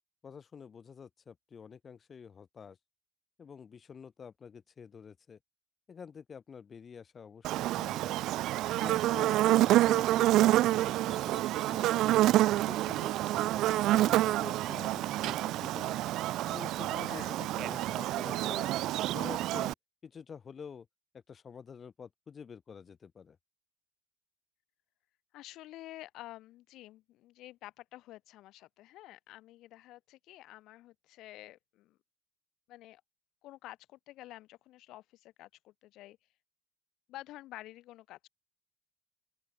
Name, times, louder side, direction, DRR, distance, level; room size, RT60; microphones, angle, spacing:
voice 1, 0.2-2.8 3.4-5.4 5.9-8.2 8.7-12.2 12.6-13.5 13.9-16.0 16.5-18.7 19.1-19.7 20.0-20.9 21.3-23.4, left 6 dB, 40° left, 2.0 m, -48 dB
Buzz, 7.4-19.7, right 15 dB, 65° right, 0.5 m, -28 dB
sound 1, 8.9-15.2, right 3 dB, 20° right, 7.3 m, -59 dB
voice 2, 17.1-17.4 25.3-32.0 32.7-33.0 33.4-36.2 37.1-38.2, left 16 dB, 65° left, 5.3 m, -50 dB
open air
hypercardioid pair, 65°, 0 cm